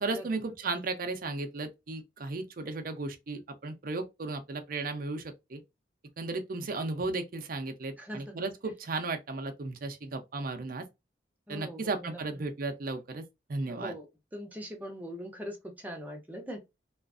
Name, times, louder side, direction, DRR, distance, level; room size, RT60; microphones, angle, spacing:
voice 1, 0.0-5.6 6.2-10.8 11.5-13.2 13.5-13.9, right 3 dB, 50° right, 0.5 m, -35 dB
voice 2, 8.0-8.4 11.5-12.5 13.7-14.1 14.3-16.6, equal, 10° right, 0.7 m, -41 dB
2.4 x 2.3 x 2.4 m
head